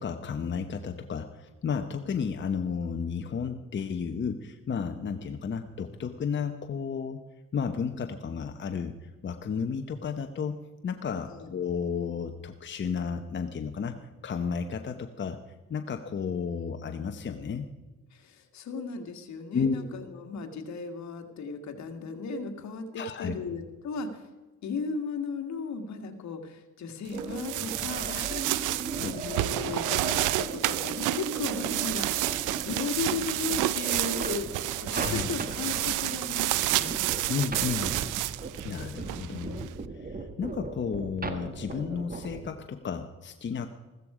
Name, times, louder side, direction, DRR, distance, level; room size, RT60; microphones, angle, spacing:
voice 1, 0.0-7.2 7.5-10.6 10.8-15.4 15.7-17.7 19.5-19.9 23.0-23.4 29.0-29.1 34.9-35.3 37.3-37.9 38.6-39.7 39.9-43.7, left 6 dB, 40° left, 6 dB, 0.9 m, -32 dB
voice 2, 18.1-24.3 24.6-37.0, left 4 dB, 65° left, 6 dB, 1.9 m, -36 dB
sound 1, 27.1-42.5, right 3 dB, 30° right, 1.5 m, -38 dB
sound 2, 27.1-39.7, right 15 dB, 90° right, 0.6 m, -30 dB
15.0 x 13.5 x 5.0 m, 1.2 s
cardioid pair, 90°, 30 cm